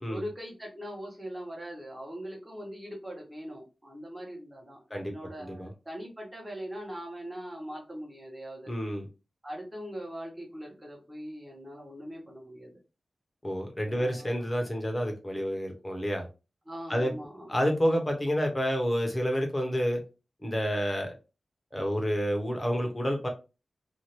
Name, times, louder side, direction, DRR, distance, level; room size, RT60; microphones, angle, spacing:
voice 1, 0.1-8.7 9.4-12.8 13.9-14.5 16.7-17.5, equal, 15° right, -2 dB, 1.2 m, -41 dB
voice 2, 5.4-5.7 8.7-9.1 13.4-16.3 16.9-17.1 17.5-20.0 20.4-21.1 21.7-23.3, equal, 15° left, 3 dB, 0.9 m, -29 dB
2.7 x 2.4 x 3.1 m, 0.30 s
wide cardioid pair, 110°, 0 cm